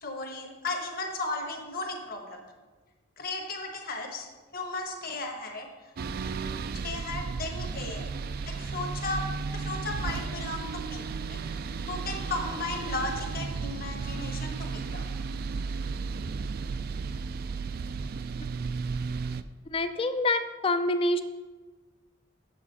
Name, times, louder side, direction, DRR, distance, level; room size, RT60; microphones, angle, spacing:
voice 1, 0.0-2.4 3.2-4.3 4.5-5.7 6.8-8.1 8.5-9.2 9.5-11.4 11.9-15.0, left 2 dB, 45° left, 3 dB, 1.2 m, -35 dB
sound 1, 6.0-19.4, right 4 dB, 45° right, 0.3 m, -34 dB
voice 2, 19.7-21.2, left 2 dB, 25° left, 10 dB, 0.4 m, -26 dB
8.4 x 7.3 x 4.2 m, 1.3 s
head